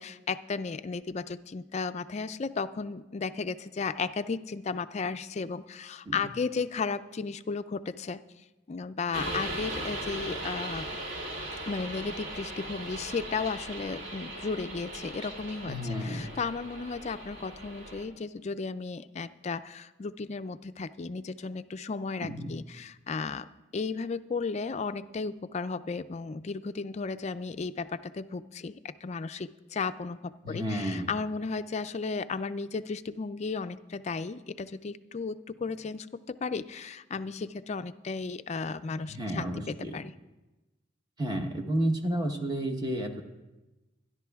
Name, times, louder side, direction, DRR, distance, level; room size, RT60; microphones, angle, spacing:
voice 1, 0.0-8.2 8.7-10.9 11.7-15.8 16.0-23.5 23.7-40.1, left 4 dB, 35° left, 12 dB, 0.4 m, -34 dB
sound 1, 9.1-18.0, right 1 dB, 60° right, 1.9 m, -38 dB
voice 2, 15.7-16.3 22.2-22.5 30.4-31.1 39.1-40.0 41.2-43.2, right 1 dB, 20° right, 4 dB, 1.0 m, -31 dB
25.0 x 11.0 x 2.3 m, 1.1 s
head